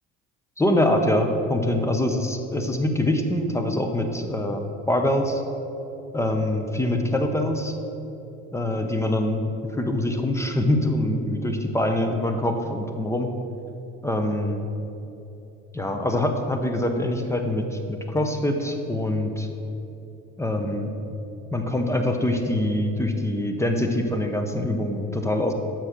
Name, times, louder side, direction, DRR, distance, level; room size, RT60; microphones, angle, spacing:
voice 1, 0.6-5.4 6.1-7.7 8.5-13.3 14.0-14.6 15.7-19.5 20.4-20.9 21.5-25.5, left 1 dB, 10° left, 5 dB, 0.9 m, -24 dB
7.1 x 5.9 x 6.6 m, 2.9 s
supercardioid pair, 85°, 29 cm